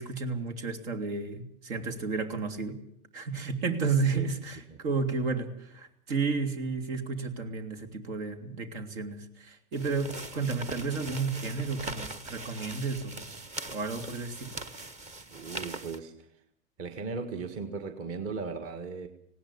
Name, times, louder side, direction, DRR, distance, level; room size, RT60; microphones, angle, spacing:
voice 1, 0.0-2.7 3.1-13.3 13.7-14.5, right 4 dB, 65° right, 7 dB, 3.3 m, -32 dB
sound 1, 9.7-16.0, right 2 dB, 15° right, 0.9 m, -41 dB
voice 2, 15.3-16.3 16.8-19.1, right 4 dB, 35° right, 6 dB, 1.8 m, -37 dB
19.5 x 17.0 x 8.6 m, 0.73 s
hypercardioid pair, 130°, 42 cm